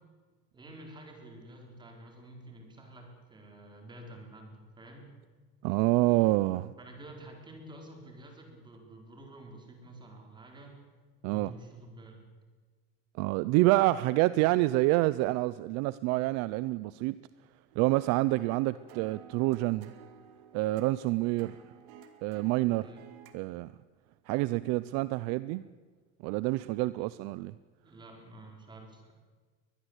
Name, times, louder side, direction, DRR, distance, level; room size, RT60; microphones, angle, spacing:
voice 1, 0.5-5.1 6.8-10.8 11.2-12.2 22.7-23.0 26.9-27.1 27.8-29.1, right 1 dB, 15° right, 4.5 m, -49 dB
voice 2, 5.6-6.7 11.2-11.5 13.2-17.2 17.8-19.9 20.5-21.6 22.2-22.9 23.3-23.7 24.3-25.7 26.2-27.5, right 19 dB, 55° right, 0.6 m, -27 dB
sound 1, 17.7-23.3, right 9 dB, 80° right, 2.7 m, -53 dB
23.0 x 20.5 x 8.1 m
cardioid pair, 165°, 31 cm